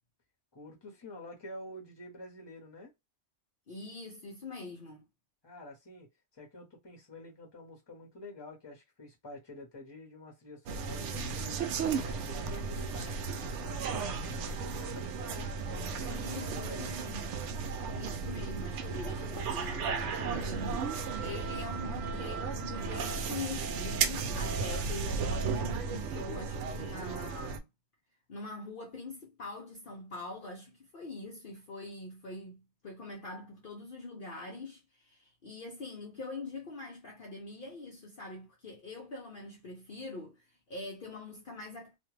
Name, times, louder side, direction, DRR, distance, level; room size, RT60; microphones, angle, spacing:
voice 1, 0.5-2.9 5.4-17.1, left 1 dB, 25° left, 1.0 m, -49 dB
voice 2, 3.7-5.1 16.1-17.4 17.9-27.7 28.3-42.0, left 3 dB, 55° left, 0.8 m, -44 dB
sound 1, 10.7-27.6, right 5 dB, 85° right, 0.9 m, -35 dB
2.5 x 2.3 x 3.1 m
omnidirectional pair, 1.2 m